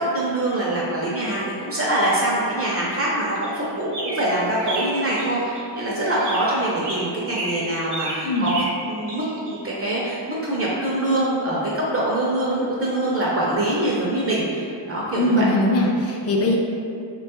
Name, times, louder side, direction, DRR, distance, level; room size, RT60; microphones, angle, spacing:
voice 1, 0.0-8.5 8.9-9.2 9.5-15.4, right 1 dB, 35° right, -5 dB, 0.4 m, -24 dB
sound 1, 3.4-5.9 6.2-9.8 10.5-10.6, right 2 dB, 65° right, 0.7 m, -32 dB
voice 2, 8.2-8.5 15.2-16.6, left 1 dB, 35° left, 0 dB, 0.4 m, -20 dB
2.9 x 2.2 x 2.9 m, 2.4 s
cardioid pair, 95°, 45 cm